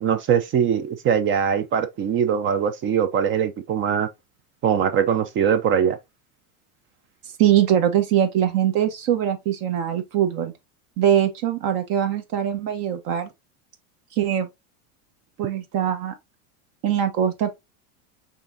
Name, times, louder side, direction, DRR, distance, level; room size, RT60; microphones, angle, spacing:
voice 1, 0.0-4.1 4.6-6.0, right 8 dB, 30° right, 0.5 m, -22 dB
voice 2, 7.4-10.5 11.0-13.3 14.1-14.5 15.4-16.1 16.8-17.5, right 10 dB, 50° right, 1.0 m, -22 dB
5.5 x 3.6 x 2.6 m
supercardioid pair, 130°, 45 cm